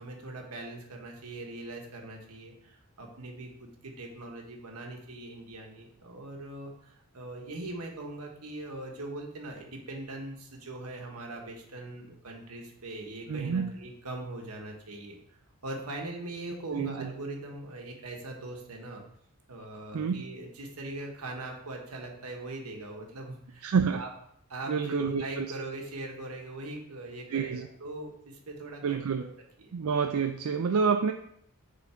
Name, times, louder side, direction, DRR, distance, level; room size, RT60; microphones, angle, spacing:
voice 1, 0.0-15.2 15.6-19.0 19.5-24.1 24.5-29.3 29.6-29.7, right 2 dB, 90° right, 2 dB, 1.3 m, -41 dB
voice 2, 13.3-13.7 16.7-17.1 19.9-20.2 23.6-24.0 24.7-25.5 27.3-27.7 28.8-29.3 29.7-31.1, right 6 dB, 70° right, 6 dB, 0.4 m, -28 dB
7.1 x 3.8 x 4.4 m, 0.70 s
head